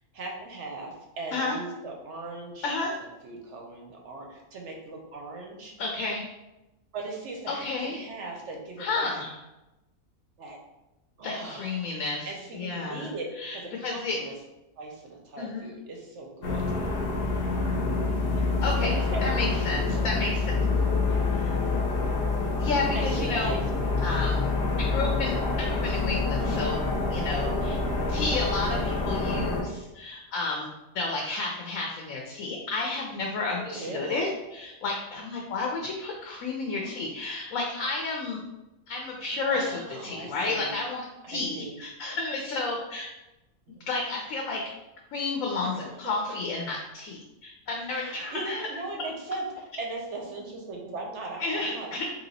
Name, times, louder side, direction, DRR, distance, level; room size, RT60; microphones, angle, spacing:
voice 1, 0.1-2.7 3.2-5.7 6.9-9.2 10.4-10.6 11.2-11.9 12.2-13.3 13.5-14.3 14.8-16.6 18.3-18.4 18.8-19.2 19.9-20.8 21.1-21.3 22.9-24.1 26.3-27.2 28.7-29.1 33.6-34.3 36.8-37.0 39.5-40.7 41.2-41.8 43.7-43.8 47.9-52.1, right 3 dB, 60° right, 1 dB, 0.9 m, -39 dB
voice 2, 5.8-6.2 7.5-8.1 8.8-9.4 11.2-12.3 12.5-13.1 13.4-13.6 13.8-14.2 15.4-15.7 18.6-18.9 19.2-20.5 21.3-21.5 22.6-23.6 24.0-24.5 24.8-26.8 27.1-27.8 28.1-30.7 30.9-38.4 38.9-43.1 43.9-44.6 45.1-48.6 51.4-51.7, left 3 dB, 70° left, 0 dB, 1.0 m, -31 dB
sound 1, 16.4-29.6, left 3 dB, 50° left, 0.8 m, -27 dB
3.3 x 2.8 x 3.9 m, 0.98 s
omnidirectional pair, 1.5 m